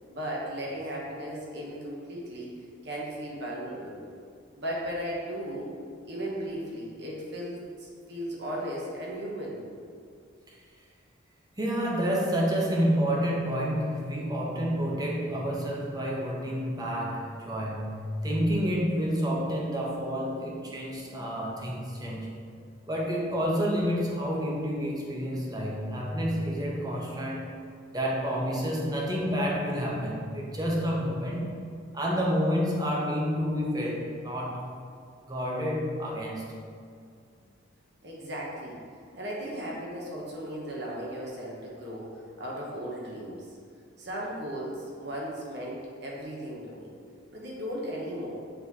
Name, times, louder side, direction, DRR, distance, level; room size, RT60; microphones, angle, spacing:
voice 1, 0.1-2.5 2.8-4.0 4.5-5.7 6.0-9.6 38.0-38.8 39.1-43.5 44.0-46.9 47.3-48.4, equal, 55° right, -4 dB, 1.2 m, -36 dB
voice 2, 11.6-22.3 22.9-27.5 27.9-31.6 31.9-34.6 35.2-36.5, equal, 20° right, -3 dB, 0.9 m, -29 dB
6.8 x 4.3 x 4.2 m, 2.3 s
head